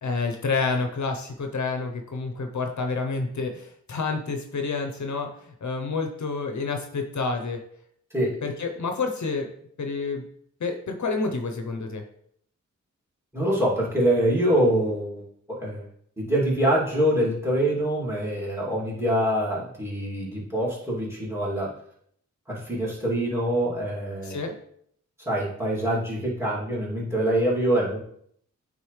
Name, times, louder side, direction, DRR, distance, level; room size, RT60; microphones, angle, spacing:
voice 1, 0.0-7.6 8.4-9.5 9.8-10.2 10.6-12.0 24.2-24.5, left 4 dB, 65° left, 4 dB, 0.8 m, -29 dB
voice 2, 13.3-15.3 15.6-15.9 16.2-21.7 22.5-24.4 25.2-28.0, right 1 dB, 10° right, -4 dB, 2.6 m, -25 dB
9.1 x 3.8 x 3.2 m, 0.67 s
wide cardioid pair, 90°, 31 cm